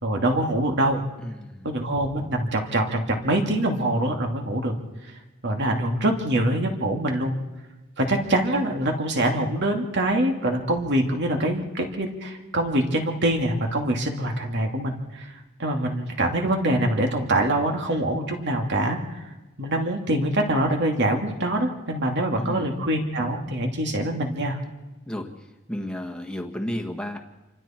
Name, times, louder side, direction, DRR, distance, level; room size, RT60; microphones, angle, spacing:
voice 1, 0.0-1.0 1.6-4.7 5.4-7.3 8.0-15.3 15.6-19.2 19.6-24.6, right 1 dB, 55° right, 2 dB, 2.6 m, -24 dB
voice 2, 1.2-1.7 22.4-22.7 25.1-25.3 25.7-27.2, equal, 5° left, 2 dB, 1.5 m, -32 dB
28.5 x 24.5 x 4.5 m, 1.1 s
head